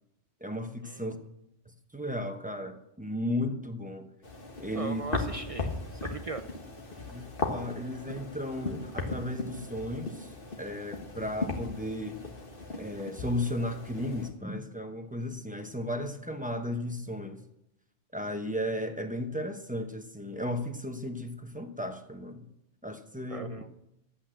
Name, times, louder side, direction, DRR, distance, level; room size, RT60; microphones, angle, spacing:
voice 1, 0.4-1.2 1.7-4.1 4.6-5.0 7.1-12.2 12.7-17.4 18.1-22.5 22.8-23.6, left 1 dB, 10° right, 0.8 m, -35 dB
sound 1, 4.2-14.3, left 3 dB, 50° left, 1.9 m, -37 dB
voice 2, 4.7-6.4 23.3-23.7, right 3 dB, 45° right, 0.5 m, -39 dB
12.0 x 8.6 x 7.7 m
omnidirectional pair, 1.2 m